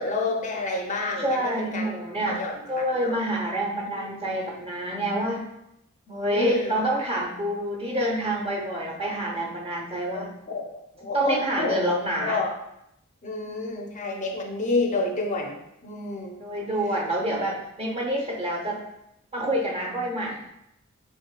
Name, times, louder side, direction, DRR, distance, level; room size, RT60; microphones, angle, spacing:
voice 1, 0.0-1.9 2.3-3.1 4.0-4.2 6.1-6.7 10.1-11.8 12.2-12.5 13.2-16.4, left 3 dB, 35° left, 2 dB, 0.5 m, -29 dB
voice 2, 1.2-2.4 2.7-5.4 6.1-10.3 11.1-12.4 16.4-18.8 19.3-20.4, right 1 dB, 30° right, -1 dB, 0.8 m, -27 dB
7.1 x 3.1 x 2.2 m, 0.80 s
head